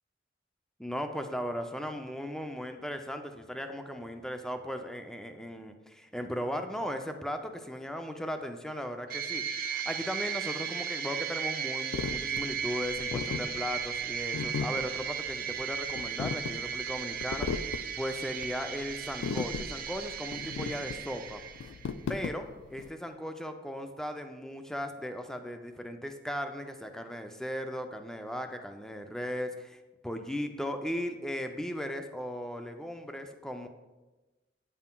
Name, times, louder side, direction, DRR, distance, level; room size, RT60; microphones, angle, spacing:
voice 1, 0.8-21.4 22.1-33.7, equal, 5° left, 6 dB, 0.4 m, -37 dB
sound 1, 9.1-21.9, right 7 dB, 55° right, 0.4 m, -36 dB
sound 2, 11.9-22.9, left 5 dB, 90° left, 0.3 m, -37 dB
9.2 x 5.6 x 2.2 m, 1.1 s
head